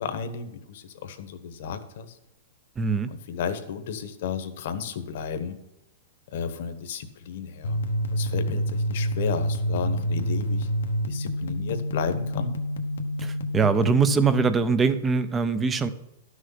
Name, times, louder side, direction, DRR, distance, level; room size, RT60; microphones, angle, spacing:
voice 1, 0.0-2.2 3.3-5.6 6.3-7.8 8.1-10.7 11.1-12.5, left 7 dB, 55° left, 9 dB, 1.2 m, -33 dB
voice 2, 2.8-3.1 13.2-15.9, right 5 dB, 10° right, 12 dB, 0.6 m, -22 dB
sound 1, 7.6-14.5, equal, 85° left, 1.2 m, -28 dB
12.0 x 6.4 x 5.7 m, 0.89 s
supercardioid pair, 165°, 0 cm